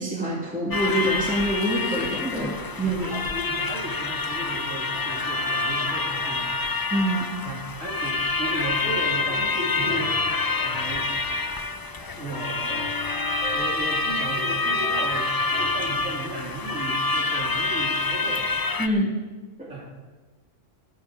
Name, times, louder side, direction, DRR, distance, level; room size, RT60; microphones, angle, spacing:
voice 1, 0.0-3.2 6.9-7.3 18.8-19.1 19.6-19.7, right 1 dB, 5° right, -4 dB, 2.0 m, -26 dB
sound 1, 0.7-18.9, left 3 dB, 30° left, 0.4 m, -27 dB
voice 2, 2.8-6.6 7.4-11.1 12.2-12.9 13.5-15.3 15.6-18.5 19.7-19.8, right 2 dB, 90° right, -3 dB, 3.4 m, -35 dB
sound 2, 8.7-16.1, left 3 dB, 70° left, 3.3 m, -42 dB
14.5 x 13.0 x 4.8 m, 1.3 s
omnidirectional pair, 1.3 m